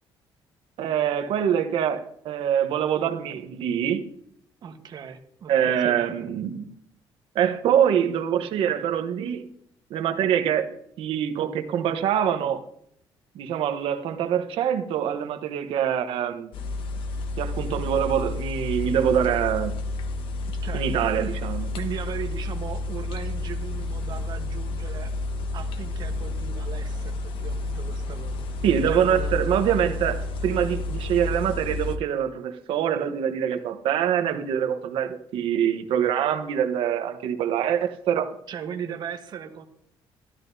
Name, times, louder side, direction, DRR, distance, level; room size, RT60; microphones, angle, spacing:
voice 1, 0.8-4.1 5.5-6.7 7.3-9.5 9.9-12.6 13.3-16.5 17.4-19.7 20.7-21.7 28.6-38.3, right 9 dB, 75° right, 1.0 m, -24 dB
voice 2, 4.6-6.0 20.6-20.8 21.2-21.4 21.8-25.1 25.5-28.4 28.9-29.4 38.5-39.7, right 7 dB, 50° right, 1.2 m, -37 dB
sound 1, 16.5-32.0, left 2 dB, 70° left, 1.1 m, -30 dB
13.0 x 12.0 x 2.7 m
cardioid pair, 135°, 9 cm